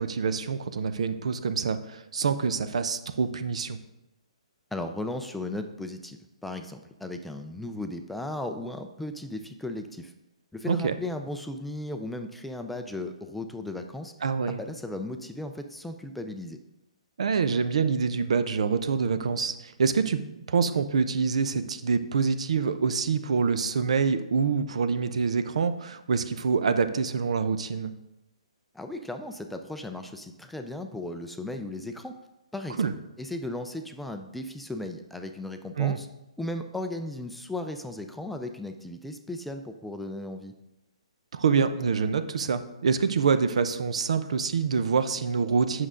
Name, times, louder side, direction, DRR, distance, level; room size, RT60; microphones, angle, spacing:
voice 1, 0.0-3.8 10.6-10.9 14.2-14.6 17.2-20.2 20.5-27.9 32.8-32.9 35.8-36.0 41.3-45.9, right 5 dB, 70° right, 11 dB, 0.6 m, -26 dB
voice 2, 4.7-10.1 10.5-14.1 14.5-16.6 28.7-32.1 32.5-32.9 33.2-36.1 36.4-40.5, left 1 dB, 5° left, 5 dB, 0.4 m, -36 dB
8.0 x 6.3 x 3.7 m, 0.94 s
hypercardioid pair, 145°, 3 cm